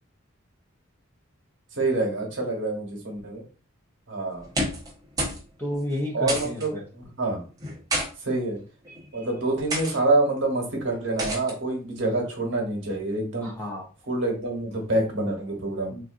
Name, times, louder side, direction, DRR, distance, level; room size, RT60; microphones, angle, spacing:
voice 1, 1.7-3.4 4.1-4.5 6.1-7.4 8.2-8.6 9.1-13.5 14.1-16.0, right 2 dB, 60° right, 0 dB, 1.1 m, -26 dB
sound 1, 4.4-4.9 5.2-5.4 5.7-5.8 6.3-6.7 7.6-8.1 8.8-9.1 9.7-10.0 11.2-11.5, right 1 dB, 15° right, 0.8 m, -29 dB
voice 2, 5.6-6.8 8.9-9.3 13.4-13.9 15.9-16.0, left 1 dB, 10° left, -2 dB, 0.6 m, -32 dB
3.8 x 2.4 x 2.4 m, 0.37 s
head